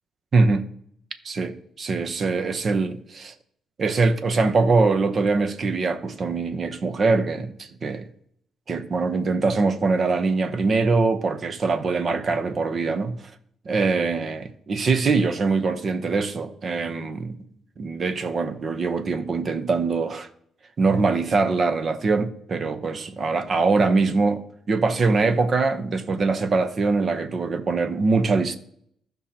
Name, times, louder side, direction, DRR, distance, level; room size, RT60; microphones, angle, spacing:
voice 1, 0.3-0.7 1.2-3.3 3.8-8.1 8.7-13.2 13.6-17.3 17.8-20.3 20.8-24.4 24.7-28.6, right 4 dB, 45° right, 0.9 m, -23 dB
15.0 x 5.4 x 2.9 m
cardioid pair, 90°, 0 cm